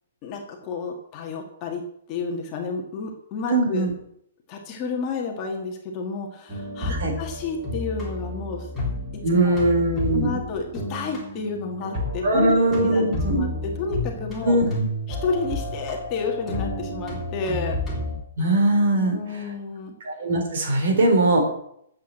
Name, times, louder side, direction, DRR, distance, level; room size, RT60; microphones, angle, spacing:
voice 1, 0.2-1.8 2.1-3.9 4.5-8.7 9.4-9.6 10.1-14.6 15.1-17.8 18.9-19.9, left 4 dB, 20° left, 0 dB, 1.8 m, -31 dB
voice 2, 3.5-3.9 6.9-7.1 9.2-10.3 12.2-13.5 14.4-14.7 18.4-19.2 20.0-21.5, right 1 dB, 50° right, 3 dB, 4.2 m, -20 dB
sound 1, 6.5-18.2, left 1 dB, ahead, 3.4 m, -31 dB
12.0 x 8.1 x 7.8 m, 0.71 s
hypercardioid pair, 180°, 0 cm